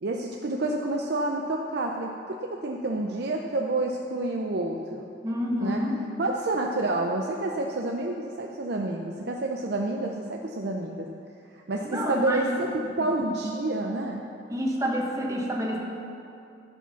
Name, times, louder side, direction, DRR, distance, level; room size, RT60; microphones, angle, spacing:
voice 1, 0.0-5.1 5.6-5.8 6.2-11.1 11.5-14.2, right 2 dB, 60° right, 1 dB, 0.6 m, -29 dB
voice 2, 5.2-6.0 11.8-12.7 13.2-13.3 14.5-15.8, equal, 20° right, -2 dB, 1.4 m, -28 dB
15.0 x 5.0 x 5.7 m, 2.7 s
head